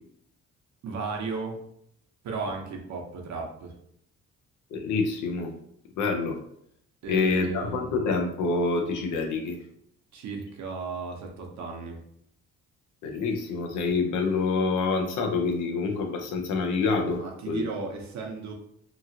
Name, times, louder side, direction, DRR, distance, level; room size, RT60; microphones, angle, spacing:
voice 1, 0.8-1.6 2.2-3.7 7.0-8.0 10.1-12.0 17.2-18.5, right 4 dB, 65° right, 2 dB, 0.8 m, -35 dB
voice 2, 4.7-5.5 6.0-6.4 7.1-9.6 13.0-17.2 17.5-17.6, left 4 dB, 85° left, 3 dB, 0.7 m, -26 dB
3.0 x 2.4 x 2.7 m, 0.71 s
cardioid pair, 90°, 30 cm